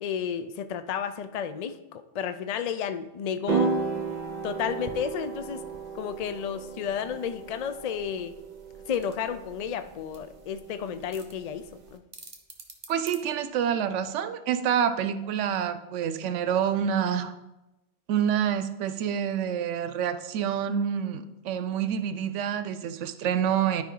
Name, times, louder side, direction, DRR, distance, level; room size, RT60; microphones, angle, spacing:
voice 1, 0.0-3.7 4.4-5.6 5.9-8.3 8.9-11.6 11.9-12.0, left 8 dB, 70° left, 10 dB, 0.3 m, -32 dB
sound 1, 3.5-11.9, right 5 dB, 45° right, 0.8 m, -34 dB
sound 2, 8.9-14.0, right 3 dB, 30° right, 1.1 m, -50 dB
voice 2, 12.9-17.3 18.1-23.8, right 8 dB, 85° right, 11 dB, 0.9 m, -27 dB
12.5 x 5.1 x 3.8 m, 0.99 s
omnidirectional pair, 1.2 m